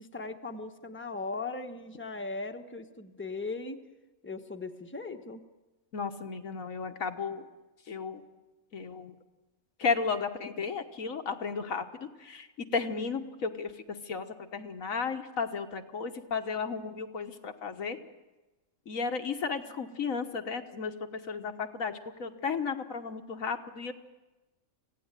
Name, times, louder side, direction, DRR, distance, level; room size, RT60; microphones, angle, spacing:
voice 1, 0.0-3.8 4.2-5.4, left 3 dB, 10° left, 5 dB, 1.1 m, -38 dB
voice 2, 5.9-7.5 7.9-8.2 8.7-9.1 9.8-11.8 12.2-12.5 12.7-13.7 14.1-18.0 18.9-20.9 21.3-23.9, left 5 dB, 85° left, 6 dB, 1.8 m, -34 dB
26.0 x 16.5 x 9.0 m, 1.1 s
omnidirectional pair, 1.4 m